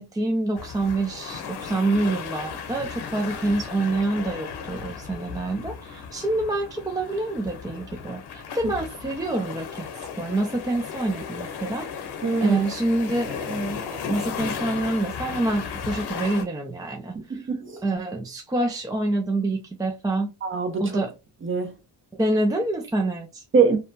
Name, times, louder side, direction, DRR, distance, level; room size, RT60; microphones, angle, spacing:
voice 1, 0.0-9.9 10.2-12.1 12.4-17.5 17.8-20.3 20.8-21.1 22.2-23.4, right 2 dB, 10° right, 0.3 m, -27 dB
sound 1, 0.5-16.4, left 6 dB, 75° left, 0.8 m, -35 dB
voice 2, 12.2-12.6 17.1-17.8 20.4-20.8 21.4-21.8 23.5-23.8, right 5 dB, 30° right, 0.8 m, -23 dB
2.8 x 2.2 x 2.6 m
cardioid pair, 90°, 41 cm